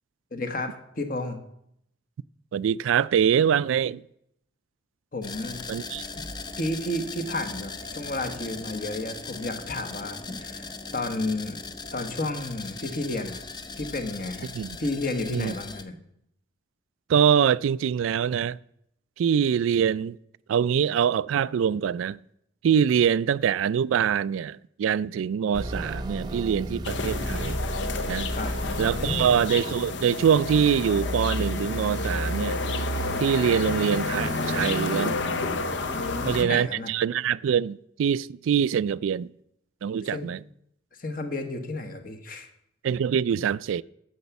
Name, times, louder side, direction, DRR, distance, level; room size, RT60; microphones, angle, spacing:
voice 1, 0.3-1.4 5.1-5.6 6.6-11.6 11.9-13.4 13.8-14.5 14.8-15.9 28.3-28.5 28.9-29.3 35.9-36.9 40.1-40.3 41.0-42.5, left 2 dB, 45° left, 1.2 m, -32 dB
voice 2, 2.5-4.0 5.7-6.0 14.5-14.8 15.3-15.5 17.1-18.6 19.2-20.2 20.5-22.2 22.6-27.6 28.1-28.3 28.8-32.6 33.2-35.2 36.3-39.3 39.8-40.4 42.8-43.8, right 8 dB, 85° right, 0.3 m, -24 dB
sound 1, 5.2-15.8, left 4 dB, 20° left, 0.6 m, -39 dB
sound 2, 25.5-35.1, right 1 dB, 20° right, 0.8 m, -37 dB
sound 3, 26.8-36.4, left 2 dB, 65° left, 0.8 m, -29 dB
9.4 x 7.2 x 7.0 m
head